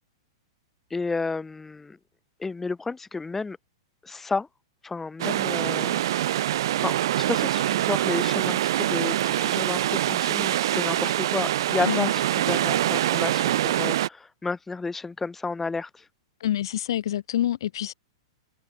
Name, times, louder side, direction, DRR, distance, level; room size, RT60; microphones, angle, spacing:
voice 1, 0.9-2.0 2.4-3.6 4.0-4.5 4.8-6.0 6.5-16.0, left 3 dB, 10° left, 2.0 m, -31 dB
sound 1, 5.2-14.1, right 13 dB, 65° right, 1.9 m, -24 dB
voice 2, 16.4-17.9, left 12 dB, 70° left, 3.4 m, -27 dB
hypercardioid pair, 130°, 3 cm